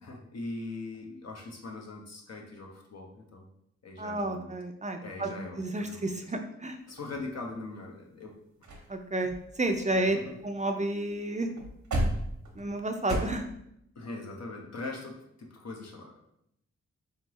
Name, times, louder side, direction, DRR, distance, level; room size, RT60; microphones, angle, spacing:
voice 1, 0.0-3.4 3.8-4.5 5.0-6.1 6.9-8.3 9.9-10.4 13.9-16.1, left 3 dB, 60° left, 1 dB, 0.9 m, -41 dB
voice 2, 4.0-5.3 5.6-6.8 8.9-10.2 10.4-11.5 12.6-13.5, right 2 dB, 25° right, 5 dB, 0.4 m, -31 dB
sound 1, 6.9-7.7 8.3-8.4 8.6-8.9 9.2-10.8 11.0-11.2 11.5-13.2, right 1 dB, 85° right, 0.9 m, -35 dB
3.8 x 3.3 x 3.0 m, 0.76 s
cardioid pair, 50°, 29 cm